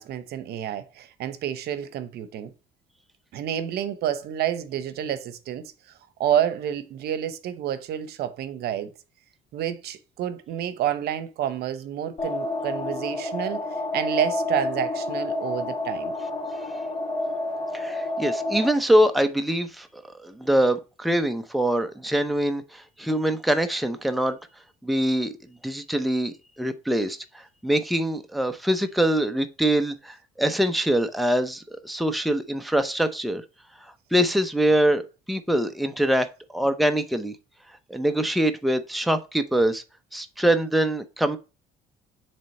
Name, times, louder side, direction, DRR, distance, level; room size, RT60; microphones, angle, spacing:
voice 1, 0.0-2.5 3.3-5.7 6.2-8.9 9.5-13.6 13.9-16.1, right 10 dB, 70° right, 0.8 m, -29 dB
sound 1, 12.2-18.7, left 2 dB, 30° left, 2.1 m, -29 dB
voice 2, 17.7-24.4 24.8-25.3 25.6-33.4 34.1-37.4 37.9-39.8 40.1-41.4, right 1 dB, ahead, 0.7 m, -24 dB
7.4 x 3.4 x 4.2 m
cardioid pair, 110°, 17 cm